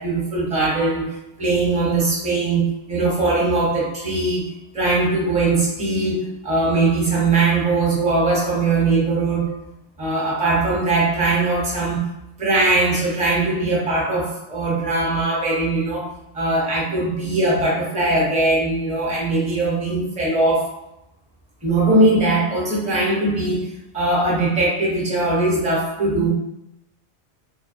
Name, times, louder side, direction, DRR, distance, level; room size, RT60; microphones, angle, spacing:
voice 1, 0.0-9.7 10.0-12.1 12.4-20.8 21.6-26.3, right 2 dB, 5° right, -6 dB, 0.7 m, -20 dB
2.3 x 2.2 x 2.5 m, 0.83 s
omnidirectional pair, 1.2 m